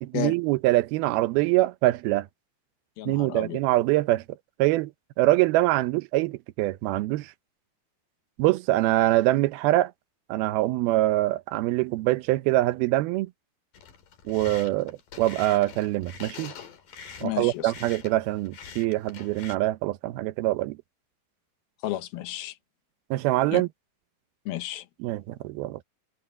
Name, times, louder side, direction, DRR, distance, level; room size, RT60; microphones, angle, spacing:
voice 1, 0.0-2.3 3.1-4.2 4.6-4.9 5.2-7.3 8.4-9.9 10.3-13.3 14.3-16.5 17.2-20.8 23.1-23.7 25.0-25.8, right 17 dB, 90° right, 2.7 m, -24 dB
voice 2, 3.0-3.6 17.2-17.7 21.8-22.5 23.5-23.6 24.5-24.9, left 14 dB, 85° left, 3.0 m, -32 dB
sound 1, 13.7-19.6, left 6 dB, 65° left, 4.4 m, -44 dB
omnidirectional pair, 4.3 m